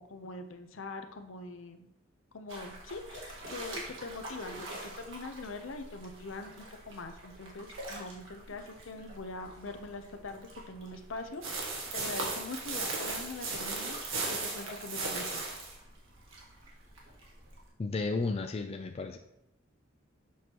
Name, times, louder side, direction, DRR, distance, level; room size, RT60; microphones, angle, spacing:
voice 1, 0.0-1.9 2.3-14.0 14.3-15.4, left 3 dB, 70° left, 7 dB, 0.7 m, -43 dB
sound 1, 2.5-17.7, right 1 dB, 65° right, 1.6 m, -48 dB
sound 2, 11.4-15.8, right 3 dB, 80° right, 1.4 m, -35 dB
voice 2, 17.8-19.2, left 3 dB, 30° left, 4 dB, 0.3 m, -33 dB
7.2 x 6.1 x 2.9 m, 0.84 s
head